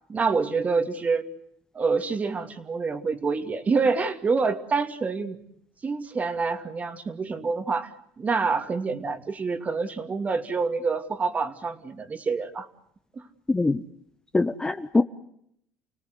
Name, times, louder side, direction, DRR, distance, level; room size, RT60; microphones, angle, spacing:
voice 1, 0.1-1.2 1.7-5.4 5.8-12.7 13.1-13.3, right 4 dB, 25° right, 8 dB, 2.6 m, -27 dB
voice 2, 14.3-15.0, left 3 dB, 15° left, 9 dB, 1.0 m, -22 dB
30.0 x 18.0 x 8.1 m, 0.72 s
cardioid pair, 110°, 5 cm